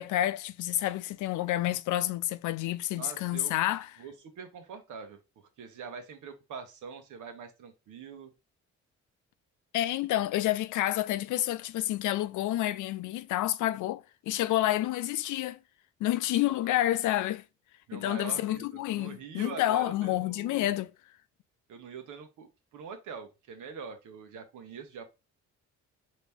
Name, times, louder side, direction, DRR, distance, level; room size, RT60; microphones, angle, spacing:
voice 1, 0.0-3.9 9.7-15.6 16.0-17.4 17.9-20.9, left 14 dB, 80° left, 0.5 m, -29 dB
voice 2, 2.9-3.6 4.0-8.3 16.6-16.7 17.9-20.7 21.7-25.0, right 6 dB, 80° right, 1.2 m, -44 dB
4.2 x 3.0 x 3.5 m
cardioid pair, 90°, 30 cm